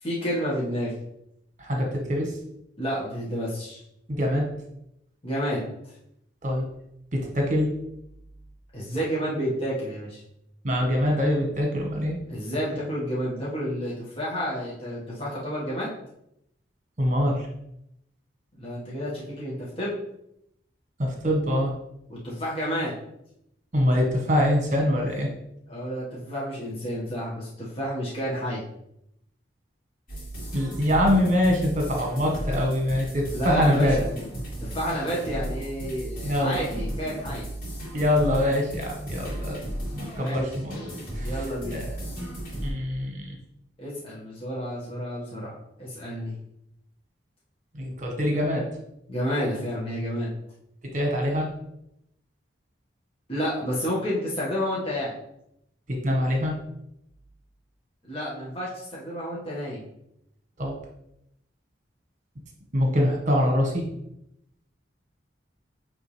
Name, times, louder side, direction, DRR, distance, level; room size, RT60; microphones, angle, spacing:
voice 1, 0.0-0.9 2.8-3.8 5.2-5.6 8.7-10.2 12.3-15.9 18.5-20.0 22.1-22.9 25.7-28.6 33.3-34.1 34.6-37.5 40.2-40.5 41.2-41.9 43.8-45.5 45.8-46.3 49.1-50.3 53.3-55.1 58.0-59.8, equal, 30° left, -7 dB, 1.7 m, -30 dB
voice 2, 1.6-2.3 4.1-4.5 6.4-6.6 7.1-7.7 10.6-12.2 17.0-17.5 21.0-21.7 23.7-25.3 30.5-34.0 36.2-36.6 37.9-39.6 39.9-40.9 41.2-41.5 41.7-41.9 42.2-42.3 42.6-43.4 47.7-48.7 50.9-51.5 55.9-56.6 60.6-60.7 62.7-63.9, equal, 40° right, 1 dB, 1.4 m, -24 dB
sound 1, 30.1-42.7, right 1 dB, 50° left, 2.6 m, -35 dB
8.2 x 3.7 x 3.4 m, 0.79 s
head